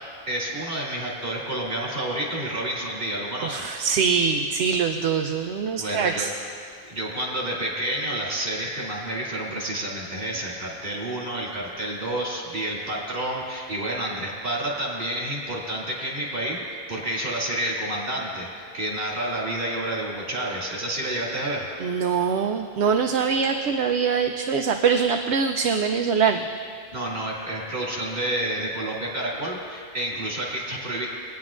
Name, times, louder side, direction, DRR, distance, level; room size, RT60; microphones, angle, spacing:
voice 1, 0.3-3.6 5.8-6.3 6.8-21.7 26.9-31.1, right 1 dB, 60° right, -5 dB, 2.8 m, -29 dB
voice 2, 3.4-6.3 21.8-26.5, right 6 dB, 80° right, 4 dB, 0.9 m, -23 dB
21.5 x 9.3 x 2.5 m, 2.3 s
omnidirectional pair, 1.1 m